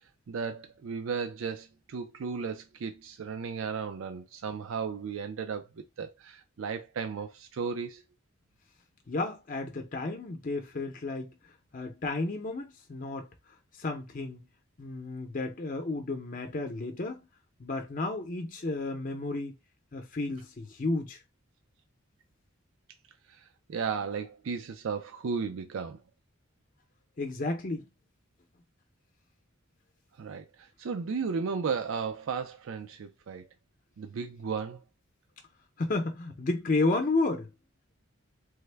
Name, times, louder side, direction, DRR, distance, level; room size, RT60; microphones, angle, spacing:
voice 1, 0.3-8.0 23.3-26.0 30.2-33.5 34.0-34.8, right 5 dB, 70° right, 0.4 m, -35 dB
voice 2, 9.1-11.3 11.7-13.3 13.8-14.4 14.8-17.2 17.6-19.6 19.9-21.2 27.2-27.9 35.8-37.5, left 2 dB, 40° left, 0.6 m, -32 dB
3.4 x 2.1 x 3.3 m
head